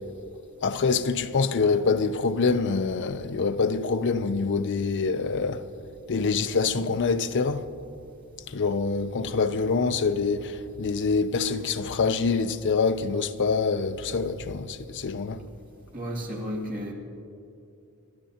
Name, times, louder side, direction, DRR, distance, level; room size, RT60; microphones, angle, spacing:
voice 1, 0.6-5.6 6.1-7.6 8.5-15.4, left 4 dB, 55° left, 0.5 m, -25 dB
voice 2, 15.9-16.9, equal, 40° right, 2.4 m, -32 dB
28.0 x 12.0 x 2.9 m
head